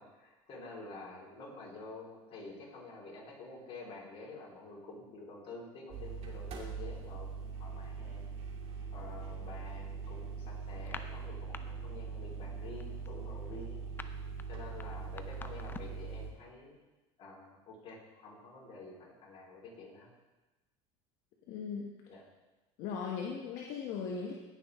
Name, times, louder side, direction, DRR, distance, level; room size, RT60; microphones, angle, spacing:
voice 1, 0.0-8.2 8.9-13.9 14.5-16.8 17.2-20.1 22.1-22.2, left 3 dB, 45° left, -4 dB, 4.0 m, -49 dB
sound 1, 5.9-16.3, right 5 dB, 50° right, 2.1 m, -42 dB
sound 2, 10.8-11.6 11.9-12.2 12.5-16.1, left 4 dB, 15° left, 0.5 m, -47 dB
voice 2, 21.5-21.9 22.8-24.3, left 6 dB, 65° left, -1 dB, 1.2 m, -38 dB
17.0 x 6.0 x 3.6 m, 1.1 s
supercardioid pair, 110°, 13 cm